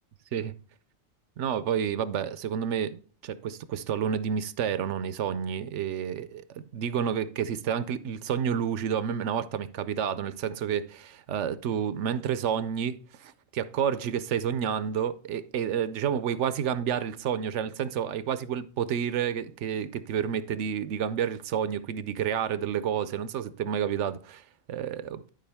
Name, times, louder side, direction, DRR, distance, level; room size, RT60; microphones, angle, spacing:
voice 1, 1.4-25.3, right 8 dB, 75° right, 0.9 m, -30 dB
11.5 x 5.1 x 3.4 m
omnidirectional pair, 1.3 m